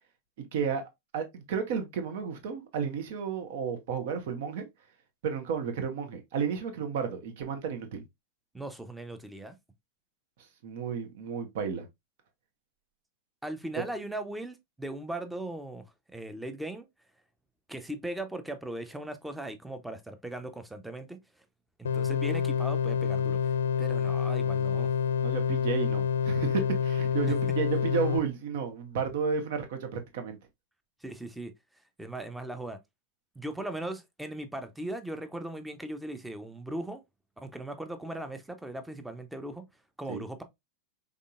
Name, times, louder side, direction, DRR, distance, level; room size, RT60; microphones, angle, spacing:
voice 1, 0.5-0.8 1.1-4.7 5.2-8.0 10.6-11.9 13.7-13.9 25.2-30.4 40.1-40.2, right 6 dB, 55° right, 1.2 m, -32 dB
voice 2, 8.5-9.6 13.4-15.8 16.1-16.8 17.7-21.2 21.8-23.5 23.8-24.9 27.3-27.4 31.0-31.5 32.0-32.8 33.4-37.0 37.4-39.7 40.0-40.4, right 1 dB, 5° right, 0.8 m, -38 dB
sound 1, 21.8-28.2, left 7 dB, 65° left, 0.4 m, -28 dB
5.3 x 3.6 x 2.5 m
figure-of-eight pair, 90°, 0 cm